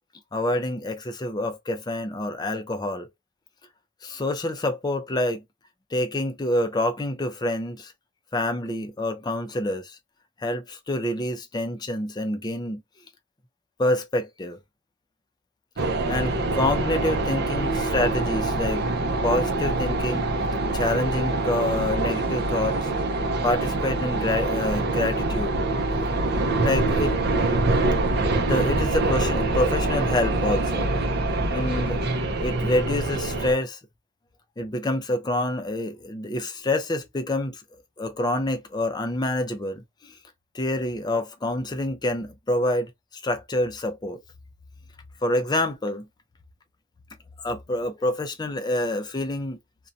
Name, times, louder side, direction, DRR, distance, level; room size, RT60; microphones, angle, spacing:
voice 1, 0.3-3.1 4.0-5.4 5.9-7.9 8.3-10.0 10.4-12.8 13.8-14.6 16.1-18.8 19.2-20.3 20.7-22.9 23.4-25.6 26.6-27.2 28.3-30.9 31.5-32.0 32.4-33.8 34.6-37.6 38.0-40.2 40.5-42.9 43.2-44.2 45.2-46.1 47.4-49.6, left 1 dB, 20° left, 0.4 m, -27 dB
sound 1, 15.8-33.5, right 2 dB, 50° right, 0.5 m, -25 dB
2.5 x 2.2 x 2.6 m
head